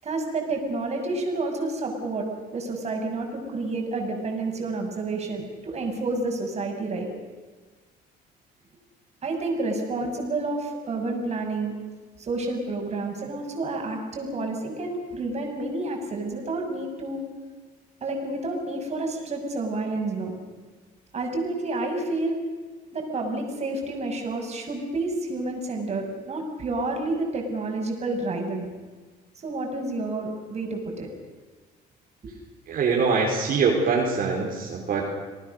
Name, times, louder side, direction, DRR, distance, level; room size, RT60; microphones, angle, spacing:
voice 1, 0.0-7.1 9.2-11.7 12.2-17.2 18.0-20.3 21.1-22.4 22.9-28.7 29.4-31.1, right 2 dB, 40° right, 2 dB, 6.4 m, -29 dB
voice 2, 32.7-35.0, right 4 dB, 55° right, -2 dB, 4.7 m, -23 dB
28.0 x 19.0 x 6.7 m, 1.4 s
cardioid pair, 110°, 17 cm